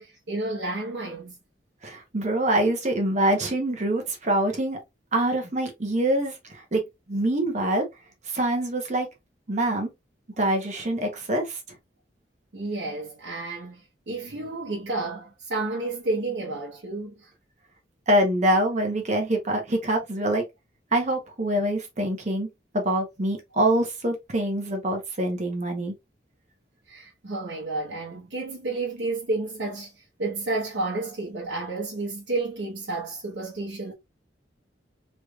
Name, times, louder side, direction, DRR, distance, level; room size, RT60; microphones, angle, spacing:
voice 1, 0.0-1.3 12.5-13.8 14.1-17.1 26.9-29.9 30.2-33.9, right 2 dB, 75° right, 0.9 m, -31 dB
voice 2, 1.8-4.8 5.1-6.8 7.1-7.8 8.3-9.1 9.5-9.9 10.4-11.6 18.1-20.4 20.9-22.5 22.7-25.9, right 1 dB, 40° right, 0.9 m, -25 dB
3.2 x 3.2 x 2.3 m
head